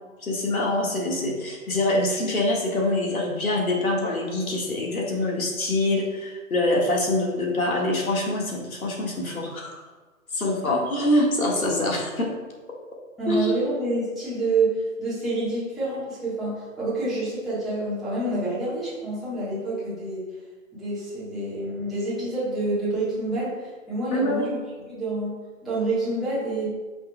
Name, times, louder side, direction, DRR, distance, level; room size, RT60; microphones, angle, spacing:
voice 1, 0.2-9.8 10.3-12.3 13.3-13.5 24.1-24.5, left 1 dB, 90° left, -1 dB, 1.8 m, -25 dB
voice 2, 13.2-20.2 20.7-24.6 24.8-25.4 25.6-26.7, right 2 dB, ahead, -12 dB, 1.5 m, -28 dB
8.7 x 5.3 x 2.3 m, 1.3 s
hypercardioid pair, 155°, 41 cm